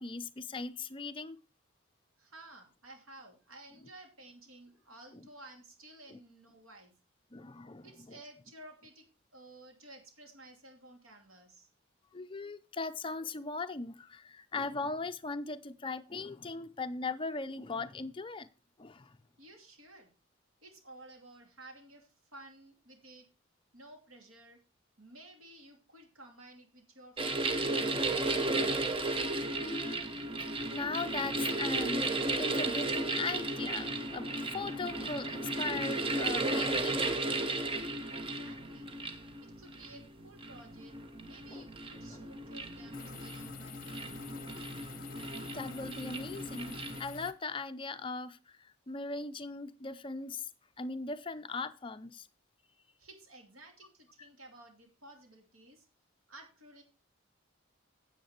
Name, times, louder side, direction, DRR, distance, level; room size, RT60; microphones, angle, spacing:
voice 1, 0.0-1.4 3.8-3.9 5.1-5.3 6.1-6.2 7.3-8.2 12.1-18.5 18.8-19.2 29.6-30.1 30.4-37.5 41.5-41.6 42.1-42.2 45.5-50.5 50.8-52.3 54.2-54.3, left 3 dB, 25° left, 0.5 m, -39 dB
voice 2, 2.2-6.9 7.8-9.0 9.3-11.7 19.4-20.1 20.6-23.3 23.7-24.6 25.0-28.0 38.0-39.0 39.4-44.1 53.0-55.9 56.3-56.8, right 2 dB, 80° right, 2.7 m, -54 dB
sound 1, 27.2-47.0, right 2 dB, 25° right, 0.8 m, -34 dB
sound 2, 42.9-47.3, left 5 dB, 40° left, 0.9 m, -47 dB
9.5 x 8.1 x 4.4 m
head